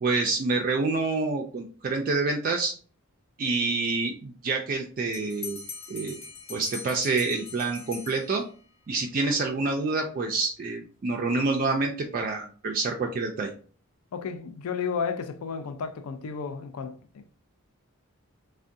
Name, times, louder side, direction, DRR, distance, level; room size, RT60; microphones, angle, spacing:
voice 1, 0.0-2.7 3.4-5.6 5.9-6.2 6.5-8.4 8.9-13.5, right 3 dB, 40° right, 0.3 m, -27 dB
Bell, 5.1-8.8, left 4 dB, 65° left, 1.0 m, -41 dB
voice 2, 14.1-17.2, left 6 dB, 85° left, 0.4 m, -33 dB
3.5 x 2.1 x 2.6 m
head